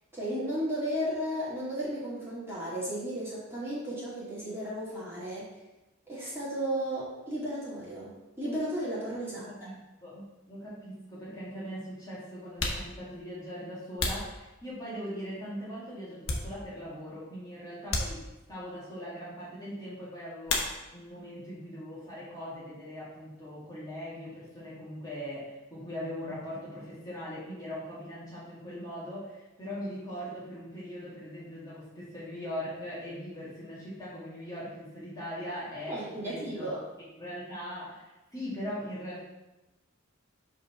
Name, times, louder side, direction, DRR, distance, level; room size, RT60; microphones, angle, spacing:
voice 1, 0.1-5.5 6.1-9.5 35.9-36.8, equal, 10° right, -9 dB, 2.3 m, -34 dB
voice 2, 9.3-18.2 18.5-20.7 20.9-36.8 37.2-39.2, equal, 20° left, -9 dB, 2.0 m, -40 dB
sound 1, 10.7-10.8 11.7-11.8 12.4-15.1 15.6-17.0 17.3-17.4 17.9-18.7 20.4-21.2 21.5-22.2 22.4-24.6, left 3 dB, 65° left, 1.0 m, -36 dB
5.3 x 3.8 x 5.6 m, 1.0 s
head